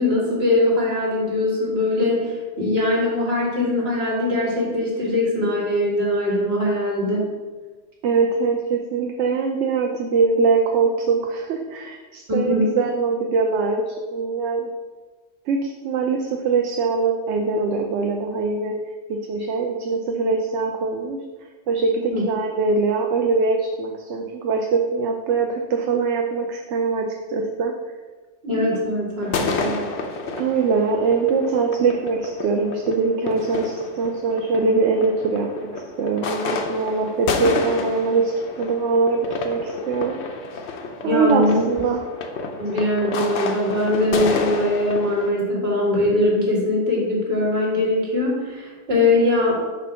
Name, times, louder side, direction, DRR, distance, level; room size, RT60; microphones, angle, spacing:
voice 1, 0.0-7.3 12.3-12.7 22.1-22.3 28.4-29.8 41.0-41.6 42.6-49.7, left 1 dB, 55° right, -4 dB, 1.8 m, -21 dB
voice 2, 8.0-14.7 15.5-18.7 19.1-21.2 21.7-27.7 30.4-38.3 38.6-39.2 39.4-40.2 41.0-42.0, right 4 dB, 75° right, 2 dB, 0.9 m, -22 dB
sound 1, 29.2-45.3, left 4 dB, 65° left, 0.9 m, -29 dB
6.6 x 2.6 x 5.5 m, 1.3 s
omnidirectional pair, 1.3 m